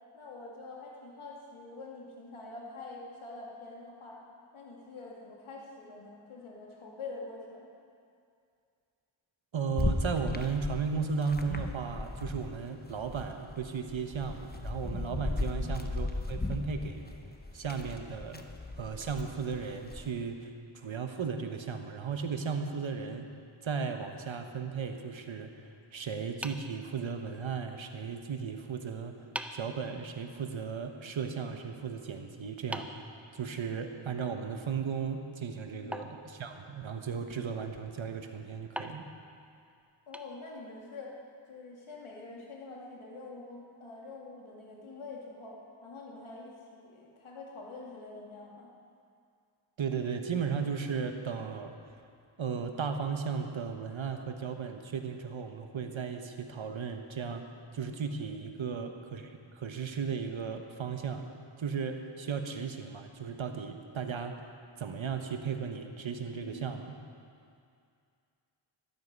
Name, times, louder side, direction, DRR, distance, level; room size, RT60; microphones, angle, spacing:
voice 1, 0.1-4.2 4.5-7.7 15.5-15.8 35.7-36.0 40.1-41.2 41.5-48.7 58.7-58.9 66.4-66.7, left 3 dB, 85° left, -3 dB, 2.5 m, -46 dB
voice 2, 9.5-17.1 17.5-18.4 18.8-23.3 23.6-29.2 29.5-33.0 33.3-39.1 49.8-51.7 52.4-57.4 57.7-61.3 61.6-64.4 64.8-67.0, right 6 dB, 70° right, 5 dB, 1.3 m, -35 dB
sound 1, 9.8-12.6 12.9-20.1, left 2 dB, 20° left, 1.0 m, -36 dB
sound 2, 26.4-27.5 28.7-28.8 29.3-29.8 32.7-33.9 35.9-37.0 38.7-40.8, equal, 5° right, 0.8 m, -43 dB
13.5 x 13.0 x 5.4 m, 2.4 s
cardioid pair, 50°, 48 cm